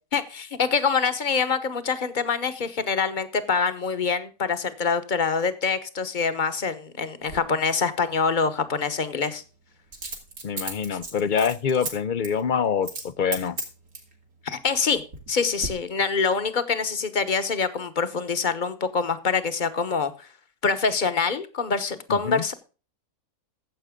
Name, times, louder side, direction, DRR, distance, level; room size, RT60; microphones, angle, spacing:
voice 1, 0.1-9.4 14.4-15.0 15.3-20.3 20.6-22.5, left 5 dB, 35° left, 1.2 m, -25 dB
Coin (dropping), 7.2-7.4 9.9-11.9 12.2-12.4 12.8-13.1 13.3-14.1 14.7-15.3 15.6-15.7, right 3 dB, 90° right, 3.0 m, -34 dB
voice 2, 10.4-13.6 22.1-22.4, left 7 dB, 55° left, 0.5 m, -25 dB
15.0 x 7.9 x 3.7 m
omnidirectional pair, 1.5 m